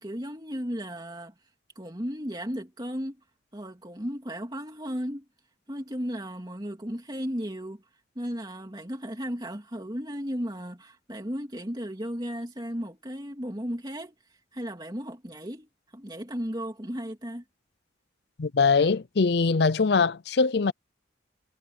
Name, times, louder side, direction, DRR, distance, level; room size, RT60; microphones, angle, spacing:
voice 1, 0.0-1.3 1.7-3.2 3.5-5.2 5.7-7.8 8.1-17.4, equal, 20° right, 2.9 m, -35 dB
voice 2, 18.4-20.7, left 4 dB, 60° left, 0.6 m, -22 dB
head